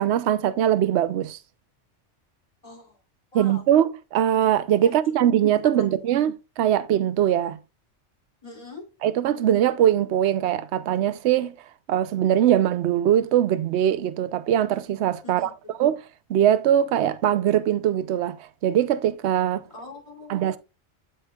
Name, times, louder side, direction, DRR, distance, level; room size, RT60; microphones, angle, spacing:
voice 1, 0.0-1.4 3.3-7.6 9.0-11.6 11.9-15.5 15.8-16.0 16.3-18.4 18.6-19.6 20.3-20.6, right 10 dB, 70° right, 0.9 m, -21 dB
voice 2, 2.6-3.0 3.3-3.7 4.8-5.1 5.6-5.9 8.4-8.9 15.2-15.5 19.7-20.3, left 3 dB, 30° left, 2.9 m, -42 dB
12.5 x 4.5 x 2.3 m
omnidirectional pair, 1.3 m